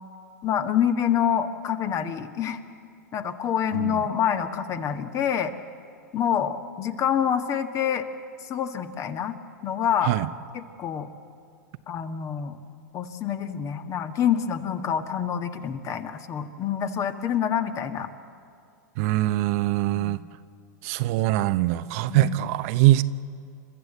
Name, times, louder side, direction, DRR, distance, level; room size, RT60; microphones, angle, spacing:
voice 1, 0.4-2.6 3.1-5.5 6.1-8.0 8.4-9.3 9.6-10.1 10.5-11.1 11.9-12.6 12.9-18.1 19.9-20.2 22.1-22.3, left 8 dB, 35° left, 8 dB, 1.5 m, -27 dB
voice 2, 19.0-20.2 20.8-23.0, right 16 dB, 55° right, 13 dB, 0.7 m, -22 dB
30.0 x 13.5 x 8.0 m, 2.4 s
hypercardioid pair, 110°, 10 cm